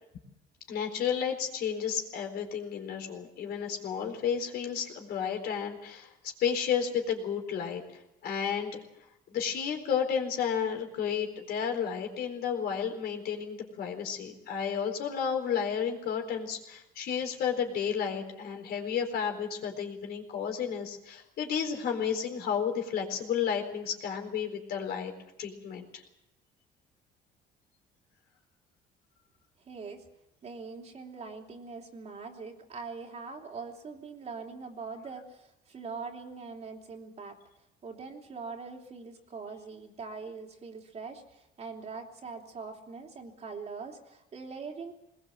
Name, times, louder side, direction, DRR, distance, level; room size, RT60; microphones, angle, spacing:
voice 1, 0.7-6.1 6.4-7.8 8.2-8.8 9.3-25.1 25.4-26.0, left 7 dB, 70° left, 4 dB, 4.2 m, -32 dB
voice 2, 29.6-30.1 30.4-37.4 37.8-44.9, right 4 dB, 40° right, 2 dB, 3.1 m, -42 dB
20.5 x 20.0 x 7.8 m, 0.87 s
cardioid pair, 110°, 17 cm